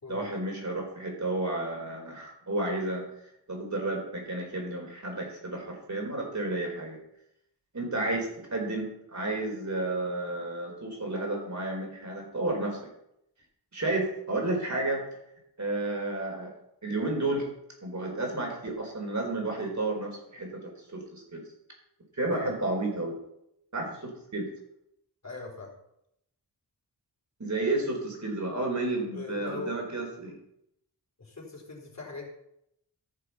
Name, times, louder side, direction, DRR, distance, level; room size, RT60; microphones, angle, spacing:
voice 1, 0.1-3.1 3.5-7.0 7.7-12.8 13.7-15.0 15.6-16.5 16.8-17.5 17.8-21.4 22.1-23.1 23.7-24.5 27.4-30.3, right 2 dB, 40° right, 1 dB, 4.4 m, -31 dB
voice 2, 25.2-25.7 29.1-29.8 31.2-32.3, left 3 dB, 40° left, -2 dB, 4.2 m, -41 dB
14.5 x 6.8 x 5.7 m, 0.78 s
wide cardioid pair, 90°, 42 cm